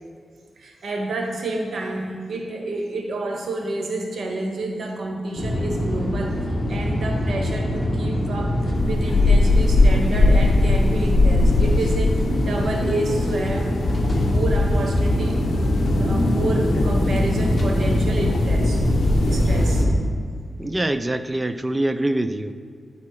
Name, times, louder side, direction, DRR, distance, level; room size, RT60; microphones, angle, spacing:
voice 1, 0.6-6.4 6.7-13.7 14.0-15.5 15.8-18.8 19.3-19.9, right 2 dB, 70° right, 2 dB, 1.1 m, -29 dB
sound 1, 5.4-19.9, left 1 dB, 35° left, 1.0 m, -23 dB
sound 2, 8.7-19.8, left 2 dB, 75° left, 0.6 m, -22 dB
voice 2, 20.6-22.5, right 1 dB, 20° right, 11 dB, 0.3 m, -24 dB
9.4 x 4.2 x 4.7 m, 2.1 s
cardioid pair, 90°, 0 cm